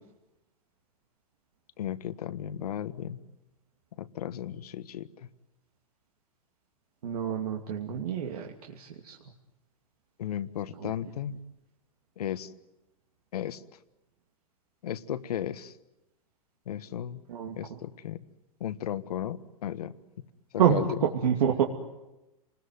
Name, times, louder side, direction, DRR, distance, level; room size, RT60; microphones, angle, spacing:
voice 1, 1.8-3.2 4.0-5.3 10.2-11.4 12.2-12.5 13.3-13.6 14.8-15.7 16.7-17.2 17.6-18.2 18.6-20.2 20.7-20.9, left 10 dB, 75° left, 13 dB, 1.5 m, -35 dB
voice 2, 7.0-9.2 10.8-10.9 17.3-17.6 20.6-21.7, right 8 dB, 75° right, 0 dB, 2.7 m, -27 dB
29.0 x 20.5 x 9.3 m, 0.98 s
hypercardioid pair, 140°, 20 cm